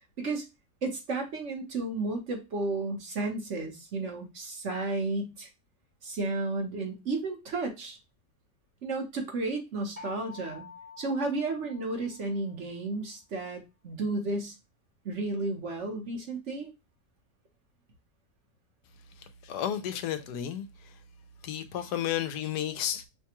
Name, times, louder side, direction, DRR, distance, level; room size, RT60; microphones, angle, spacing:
voice 1, 0.8-5.5 6.0-8.0 8.8-10.7 11.0-14.5 15.0-16.7, right 3 dB, 50° right, 1.2 m, -33 dB
sound 1, 10.0-12.7, left 6 dB, 30° right, 0.8 m, -48 dB
voice 2, 19.2-21.0 21.4-23.1, left 10 dB, 80° left, 1.2 m, -33 dB
5.9 x 2.3 x 2.9 m
omnidirectional pair, 1.7 m